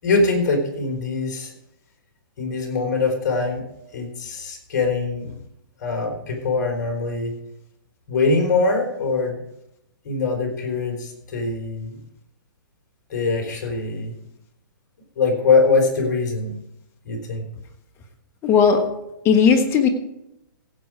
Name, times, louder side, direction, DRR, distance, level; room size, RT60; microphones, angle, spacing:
voice 1, 0.0-1.5 2.4-3.6 3.9-5.4 5.8-7.3 8.1-9.4 10.0-12.0 13.1-14.2 15.2-16.6 17.0-17.4, left 3 dB, 55° left, 2 dB, 4.2 m, -22 dB
voice 2, 18.4-18.8 19.2-19.9, left 6 dB, 20° left, 6 dB, 1.4 m, -16 dB
16.0 x 8.0 x 4.8 m, 0.85 s
hypercardioid pair, 145°, 12 cm